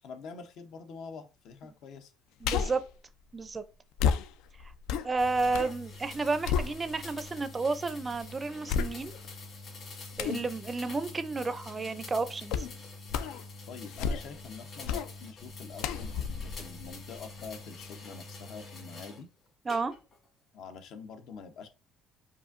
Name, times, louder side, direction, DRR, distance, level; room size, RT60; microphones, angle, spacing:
voice 1, 0.0-2.1 10.2-10.5 13.7-19.3 20.5-21.7, left 5 dB, 65° left, 0.7 m, -46 dB
sound 1, 2.4-2.9 4.0-5.8 6.1-7.2 7.7-7.8 8.7-9.3 10.2-10.5 12.5-12.8 13.1-13.4 13.8-14.5 14.8-15.1 15.8-17.5 17.9-18.0, left 7 dB, 85° left, 0.4 m, -32 dB
voice 2, 2.4-2.8 3.3-3.6 5.0-9.1 10.2-12.7 19.7-19.9, right 3 dB, 20° right, 0.4 m, -31 dB
sound 2, 5.2-19.2 19.7-20.2, left 3 dB, 45° left, 1.6 m, -46 dB
4.9 x 2.6 x 2.5 m
cardioid pair, 125°, 0 cm